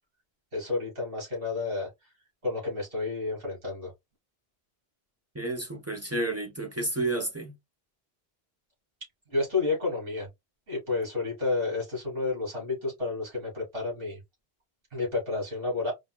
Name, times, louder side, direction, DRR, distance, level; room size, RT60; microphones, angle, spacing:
voice 1, 0.5-1.9 2.4-3.9 9.3-10.3 10.7-14.2 14.9-15.9, left 3 dB, 60° right, 2.7 m, -30 dB
voice 2, 5.3-7.6, right 2 dB, 20° right, 0.6 m, -31 dB
4.8 x 2.2 x 2.3 m
omnidirectional pair, 1.1 m